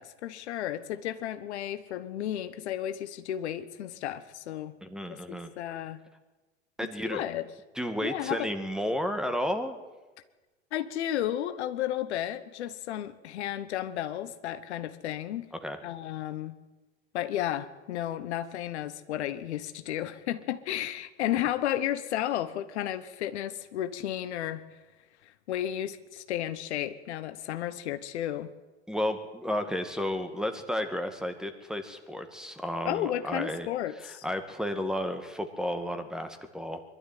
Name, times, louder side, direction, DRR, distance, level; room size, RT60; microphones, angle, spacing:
voice 1, 0.0-4.8 5.1-6.0 6.8-7.4 8.0-8.5 10.7-15.5 15.8-16.6 17.1-24.6 25.2-28.5 32.8-34.2, left 12 dB, 70° left, 11 dB, 1.3 m, -33 dB
voice 2, 4.8-5.5 6.8-7.2 7.8-9.8 15.6-15.8 28.9-33.7 34.2-36.8, equal, ahead, 8 dB, 2.1 m, -32 dB
23.0 x 12.5 x 9.4 m, 1.2 s
hypercardioid pair, 95°, 35 cm